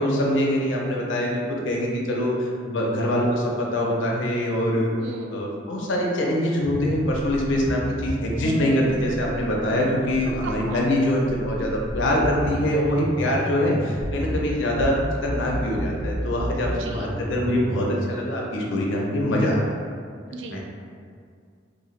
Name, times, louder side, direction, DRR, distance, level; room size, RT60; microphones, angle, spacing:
voice 1, 0.0-2.3 2.6-4.9 5.3-14.9 15.2-19.7 20.5-20.6, left 1 dB, 85° left, -2 dB, 0.5 m, -24 dB
voice 2, 5.0-5.5 10.1-10.9 16.7-17.2 20.3-20.6, right 3 dB, 75° right, 3 dB, 0.3 m, -37 dB
sound 1, 6.6-17.9, equal, 5° left, 0.7 m, -32 dB
2.7 x 2.1 x 3.1 m, 2.2 s
head